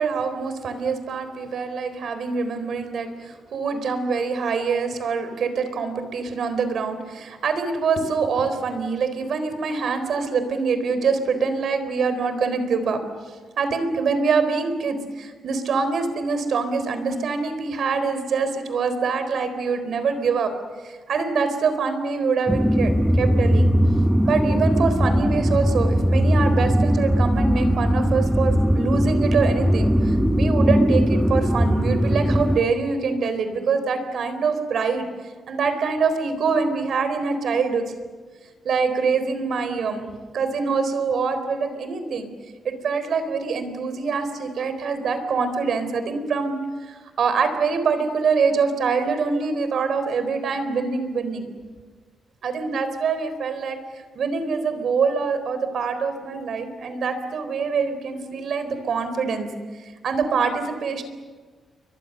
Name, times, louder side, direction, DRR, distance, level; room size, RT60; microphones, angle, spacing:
voice 1, 0.0-13.0 13.6-20.5 20.8-23.7 24.2-35.1 35.5-37.9 38.6-40.1 40.3-42.3 42.6-51.5 52.4-53.8 54.1-59.5 60.0-61.0, right 5 dB, 65° right, 9 dB, 4.1 m, -24 dB
sound 1, 22.5-32.6, equal, ahead, 1.1 m, -19 dB
30.0 x 24.0 x 6.8 m, 1.4 s
wide cardioid pair, 140°, 0 cm